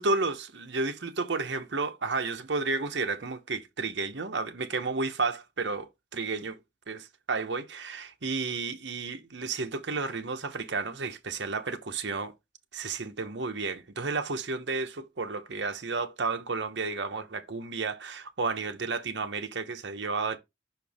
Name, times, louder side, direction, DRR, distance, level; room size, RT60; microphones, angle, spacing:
voice 1, 0.0-6.6 6.9-12.3 12.7-20.4, right 3 dB, 70° right, 0.9 m, -32 dB
6.0 x 4.5 x 3.5 m
head